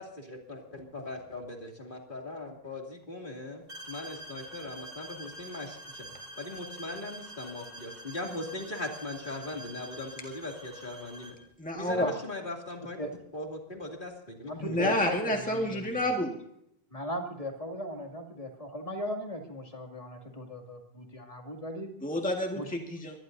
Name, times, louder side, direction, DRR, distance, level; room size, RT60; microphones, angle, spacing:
voice 1, 0.0-11.4 11.7-13.0 13.3-15.0, left 2 dB, 55° left, 1 dB, 2.9 m, -40 dB
sound 1, 3.7-11.4, right 1 dB, 65° right, 2.7 m, -46 dB
voice 2, 11.6-12.1 14.6-16.4 22.0-23.2, left 1 dB, 10° left, 1 dB, 1.8 m, -29 dB
voice 3, 14.5-16.1 16.9-21.9 22.5-22.7, equal, 35° left, 3 dB, 2.6 m, -37 dB
24.0 x 18.5 x 2.7 m, 0.72 s
omnidirectional pair, 1.0 m